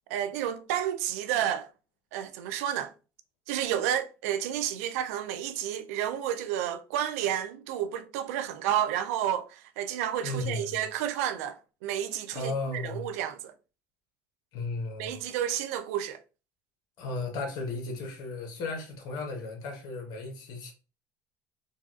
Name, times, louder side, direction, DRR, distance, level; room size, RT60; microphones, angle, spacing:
voice 1, 0.1-1.7 2.1-2.9 3.5-13.5 15.0-16.2, right 10 dB, 85° right, 0.4 m, -31 dB
voice 2, 10.2-10.8 12.3-13.1 14.5-15.1 17.0-20.7, left 2 dB, 60° left, 1.2 m, -35 dB
3.9 x 2.3 x 2.4 m
supercardioid pair, 90°, 8 cm